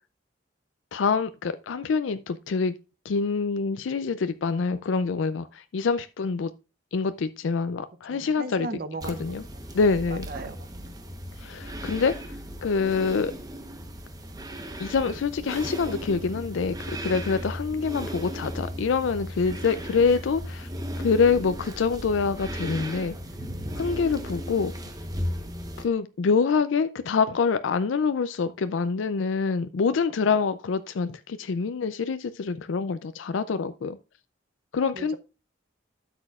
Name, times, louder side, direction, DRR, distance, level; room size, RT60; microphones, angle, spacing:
voice 1, 0.9-2.7 3.0-6.5 6.9-8.7 9.1-9.4 9.7-10.3 11.4-12.1 12.6-13.3 14.8-20.7 21.0-23.2 23.8-24.7 25.8-34.0 34.7-35.2, left 5 dB, 90° left, 0.4 m, -26 dB
voice 2, 8.1-9.7 10.1-10.7 34.9-35.2, right 3 dB, 50° right, 0.6 m, -37 dB
sound 1, 9.0-25.8, equal, 20° right, 1.0 m, -36 dB
12.5 x 6.9 x 2.4 m
head